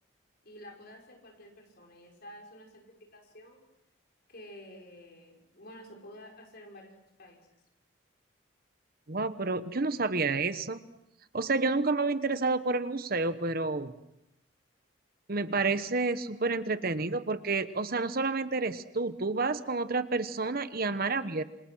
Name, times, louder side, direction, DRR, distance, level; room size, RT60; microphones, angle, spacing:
voice 1, 0.4-3.6 4.3-7.4, left 1 dB, 50° left, 1 dB, 6.0 m, -50 dB
voice 2, 9.1-10.8 11.3-13.9 15.3-21.4, right 3 dB, 50° right, 11 dB, 1.1 m, -29 dB
28.0 x 26.5 x 6.3 m, 0.85 s
head